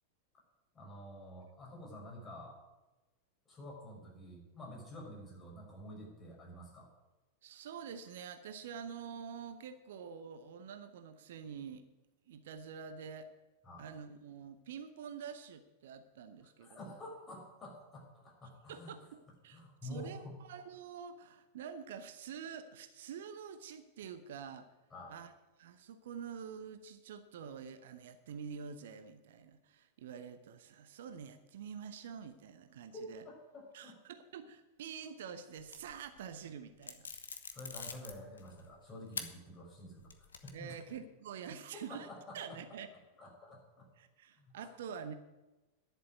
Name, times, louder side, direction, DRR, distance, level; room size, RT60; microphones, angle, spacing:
voice 1, 0.7-2.6 3.5-6.9 13.6-13.9 16.6-18.9 19.5-20.4 24.9-25.1 32.9-33.9 37.5-41.0 41.9-42.6 43.2-43.9 44.4-44.7, left 1 dB, 20° left, -2 dB, 5.9 m, -49 dB
voice 2, 7.4-11.8 12.3-13.3 13.8-16.9 18.7-24.7 25.1-25.3 25.6-33.2 33.7-37.1 40.5-42.1 42.3-42.9 44.0-45.1, right 7 dB, 55° right, 10 dB, 0.9 m, -47 dB
sound 1, 35.6-36.2 36.8-38.7 39.1-39.3 39.8-40.8, left 5 dB, 70° left, 1.2 m, -44 dB
11.0 x 8.0 x 9.3 m, 1.1 s
figure-of-eight pair, 90°, 0 cm